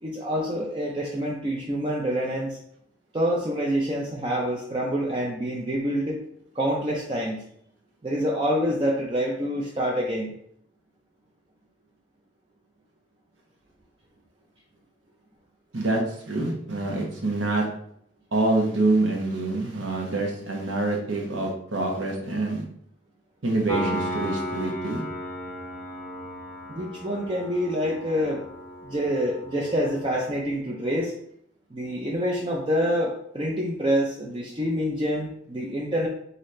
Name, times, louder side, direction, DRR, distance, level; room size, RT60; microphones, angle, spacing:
voice 1, 0.0-2.6 3.1-6.2 6.5-7.4 8.0-10.3 26.7-28.4 28.8-31.1 31.7-36.1, equal, 25° right, -3 dB, 0.5 m, -26 dB
voice 2, 15.7-17.7 18.3-22.6 23.4-25.0, right 2 dB, 75° right, 0 dB, 1.0 m, -26 dB
Piano, 23.7-30.4, equal, 10° left, 0.7 m, -35 dB
4.0 x 4.0 x 3.2 m, 0.67 s
head